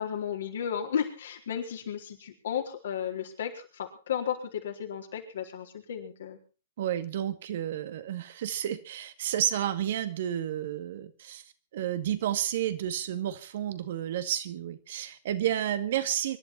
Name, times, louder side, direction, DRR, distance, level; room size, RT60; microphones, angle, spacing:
voice 1, 0.0-6.4, left 8 dB, 65° left, 3 dB, 4.3 m, -34 dB
voice 2, 6.8-11.4 11.7-16.4, right 11 dB, 60° right, 11 dB, 1.9 m, -31 dB
25.0 x 11.5 x 4.3 m, 0.35 s
hypercardioid pair, 120°, 0 cm